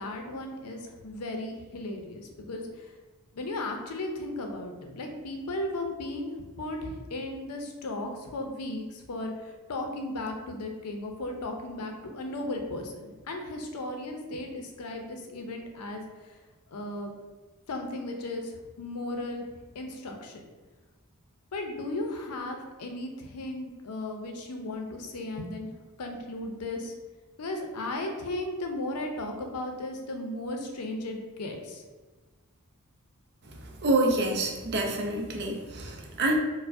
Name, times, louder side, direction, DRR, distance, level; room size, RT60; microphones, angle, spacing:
voice 1, 0.0-2.9 3.3-6.3 6.6-16.4 16.7-17.1 17.7-19.4 19.7-20.4 21.5-25.7 26.0-26.9 27.4-31.8, left 2 dB, 85° left, 3 dB, 0.5 m, -35 dB
voice 2, 33.4-36.4, right 2 dB, 50° right, 1 dB, 0.5 m, -27 dB
4.5 x 2.1 x 2.5 m, 1.3 s
head